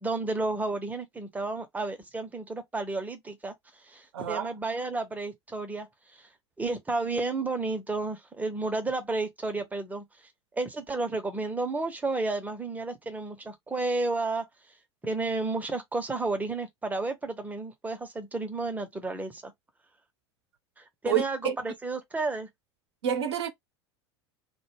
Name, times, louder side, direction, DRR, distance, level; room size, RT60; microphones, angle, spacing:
voice 1, 0.0-3.5 3.9-5.9 6.2-6.3 6.6-10.0 10.5-14.5 15.0-19.5 20.8-22.5, right 3 dB, 10° right, 0.6 m, -32 dB
voice 2, 4.1-4.5 21.1-21.6 23.0-23.5, right 9 dB, 65° right, 0.6 m, -28 dB
2.2 x 2.1 x 3.2 m
figure-of-eight pair, 80°, 15 cm